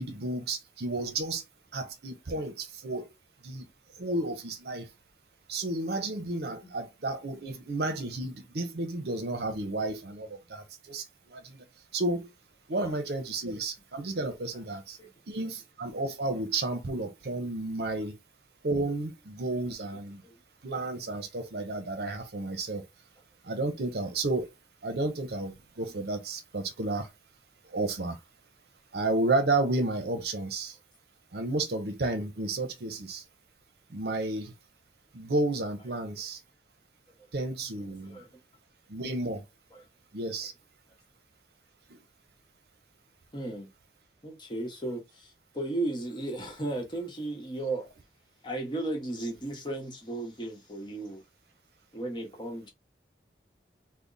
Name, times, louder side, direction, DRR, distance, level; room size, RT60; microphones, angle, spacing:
voice 1, 0.0-1.4 1.7-3.1 3.4-3.7 4.0-4.8 5.5-11.0 11.3-11.6 11.9-12.3 12.7-15.0 15.3-18.1 18.6-20.2 20.6-22.8 23.5-24.5 24.8-27.1 27.7-28.2 28.9-30.8 31.3-33.2 33.9-34.5 35.1-36.4 37.3-38.2 38.9-39.4 40.1-40.5, right 2 dB, 65° right, 0.7 m, -32 dB
voice 2, 43.3-43.7 44.2-47.9 48.4-51.2 51.9-52.7, right 2 dB, 25° left, 1.0 m, -35 dB
3.4 x 2.1 x 3.9 m
head